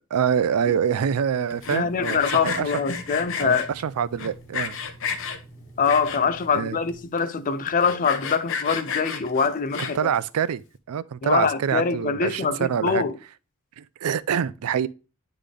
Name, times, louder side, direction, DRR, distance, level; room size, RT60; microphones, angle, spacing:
voice 1, 0.1-2.7 3.4-4.8 6.5-6.8 9.9-10.6 10.9-13.0 13.8-14.9, right 8 dB, 80° right, 0.4 m, -25 dB
Sawing, 1.5-3.7 4.2-5.4 5.8-6.4 6.9-7.0 7.2-7.3 7.7-10.2, left 6 dB, 60° left, 0.8 m, -31 dB
Water tap faucet / Sink (filling or washing), 1.5-7.1, right 1 dB, 15° right, 1.5 m, -47 dB
voice 2, 1.7-3.7 5.8-10.1 11.2-13.1, left 5 dB, 40° left, 0.4 m, -24 dB
9.7 x 3.9 x 3.3 m
head